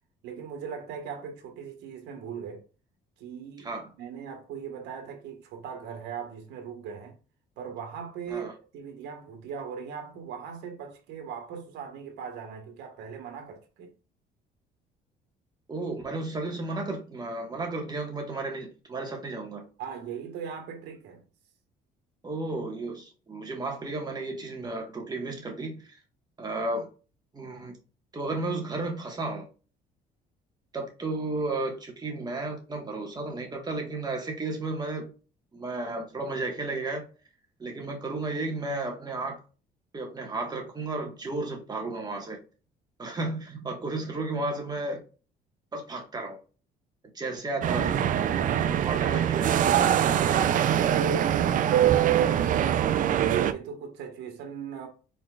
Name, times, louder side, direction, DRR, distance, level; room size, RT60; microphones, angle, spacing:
voice 1, 0.2-2.6 3.2-3.7 4.0-7.2 7.6-13.9 19.8-21.2 48.8-49.2 50.3-53.0 53.5-54.9, right 6 dB, 85° right, 1.4 m, -39 dB
voice 2, 15.7-19.7 22.2-26.0 26.4-26.9 27.3-27.7 28.1-29.5 30.7-35.1 35.5-37.0 37.6-39.4 39.9-42.4 43.0-45.0 45.7-46.4 47.1-50.0, right 2 dB, 25° right, 1.6 m, -33 dB
sound 1, 47.6-53.5, right 10 dB, 50° right, 0.5 m, -23 dB
4.4 x 4.2 x 2.4 m
cardioid pair, 110°, 17 cm